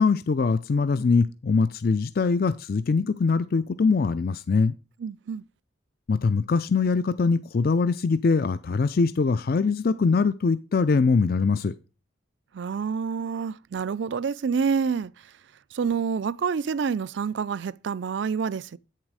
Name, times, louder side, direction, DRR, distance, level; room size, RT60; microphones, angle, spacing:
voice 1, 0.0-4.7 6.1-11.7, left 4 dB, 50° left, 0.4 m, -22 dB
voice 2, 5.0-5.4 12.5-15.3 15.7-18.8, right 6 dB, 65° right, 0.4 m, -28 dB
8.8 x 7.5 x 4.8 m
head